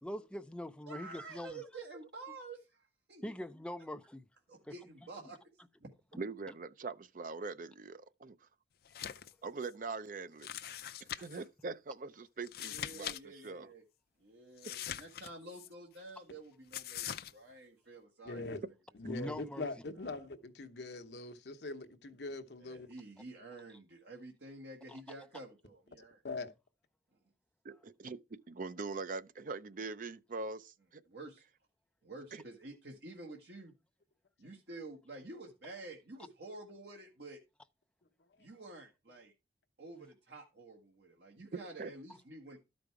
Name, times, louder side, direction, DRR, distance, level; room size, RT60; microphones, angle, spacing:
voice 1, 0.0-1.6 3.2-4.3 19.0-19.7 24.9-25.0, left 1 dB, 5° left, 0.5 m, -42 dB
voice 2, 0.9-3.3 4.5-5.4 5.8-5.9 12.6-13.8 14.2-18.6 19.1-19.3 19.9-20.3 22.6-26.2 31.1-31.4 32.0-33.7 34.4-37.4 38.4-39.3 39.8-42.6, right 2 dB, 70° right, 1.5 m, -50 dB
voice 3, 6.2-8.4 9.4-10.5 11.0-13.7 14.6-14.8 27.6-28.2 28.5-31.0 32.3-32.4 41.8-41.9, right 4 dB, 50° right, 0.5 m, -42 dB
sound 1, 8.8-9.3 9.6-9.7 10.4-11.4 12.4-13.2 13.4-13.5 14.6-15.7 16.7-17.3, left 10 dB, 60° left, 0.5 m, -42 dB
voice 4, 18.3-18.6 19.0-22.9 26.2-26.5, left 3 dB, 75° left, 0.9 m, -42 dB
12.5 x 5.2 x 4.7 m
head